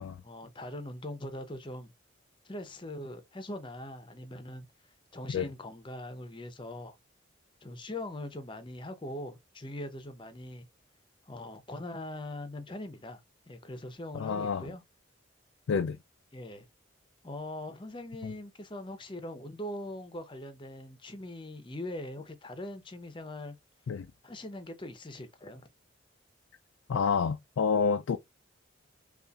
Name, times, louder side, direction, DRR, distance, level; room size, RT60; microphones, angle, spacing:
voice 1, 0.2-1.9 2.4-4.7 5.1-7.0 7.6-10.7 11.2-14.8 16.3-16.7 17.2-23.6 24.2-25.6, left 1 dB, 25° left, 0.7 m, -41 dB
voice 2, 14.1-14.7 15.7-16.0 18.2-18.3 23.9-24.1 26.9-28.2, left 5 dB, 85° left, 0.4 m, -29 dB
5.5 x 2.4 x 2.4 m
head